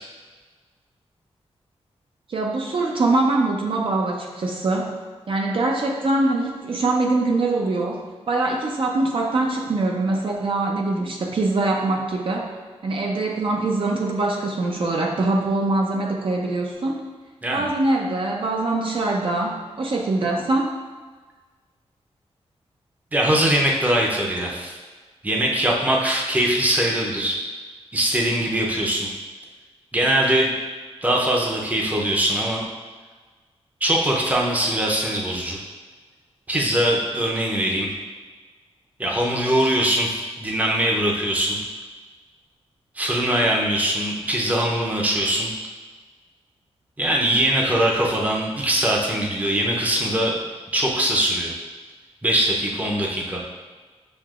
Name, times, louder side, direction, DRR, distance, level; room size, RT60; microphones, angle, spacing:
voice 1, 2.3-4.9 5.3-12.5 12.8-17.0 17.5-20.7, right 2 dB, 55° right, 0 dB, 0.5 m, -23 dB
voice 2, 23.1-24.8 25.2-27.4 27.9-29.1 29.9-30.5 31.0-32.6 33.8-35.6 36.5-37.9 39.0-41.6 42.9-45.5 47.0-50.3 50.7-51.5 52.2-53.4, right 1 dB, 15° right, -2 dB, 0.6 m, -22 dB
7.2 x 2.8 x 2.4 m, 1.4 s
wide cardioid pair, 145°, 11 cm